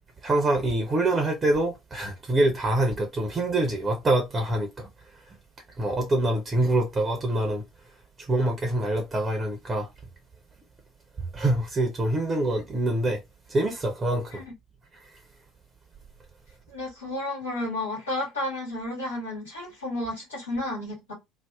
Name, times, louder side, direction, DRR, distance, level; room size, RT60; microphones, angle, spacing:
voice 1, 0.2-4.9 5.8-7.6 8.3-9.9 11.3-13.2 13.5-14.4, right 1 dB, 30° right, 0.6 m, -25 dB
voice 2, 16.7-21.1, left 1 dB, 80° left, 1.3 m, -32 dB
2.6 x 2.1 x 2.3 m
hypercardioid pair, 65°, 0 cm